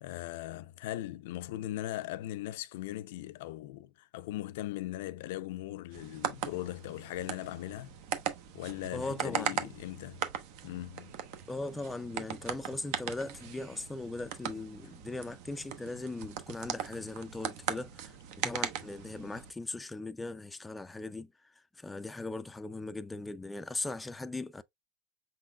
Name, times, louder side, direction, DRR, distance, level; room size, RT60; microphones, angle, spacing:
voice 1, 0.0-7.9 8.5-10.2 10.6-11.1, left 15 dB, 80° left, 0.4 m, -39 dB
sound 1, 5.9-19.5, right 9 dB, 65° right, 0.9 m, -39 dB
voice 2, 8.9-9.6 11.5-24.6, left 2 dB, 10° left, 0.3 m, -39 dB
5.9 x 3.8 x 2.2 m
supercardioid pair, 150°, 0 cm